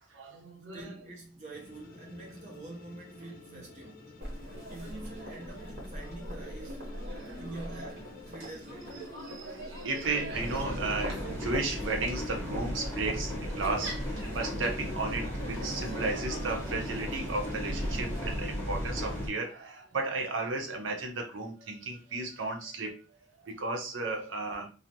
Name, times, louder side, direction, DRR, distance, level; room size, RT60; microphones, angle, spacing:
voice 1, 0.1-1.0 3.5-3.6 7.0-7.9 9.1-23.2 23.4-24.7, right 3 dB, 85° right, 0.7 m, -34 dB
voice 2, 0.7-4.0 4.7-6.8 7.4-9.1, right 2 dB, 40° right, 0.6 m, -45 dB
sound 1, 1.5-9.1, left 3 dB, 45° left, 0.4 m, -52 dB
Crowd, 4.2-18.3, equal, 55° right, 1.0 m, -41 dB
sound 2, 10.3-19.3, equal, 10° left, 0.8 m, -36 dB
2.4 x 2.0 x 2.7 m
head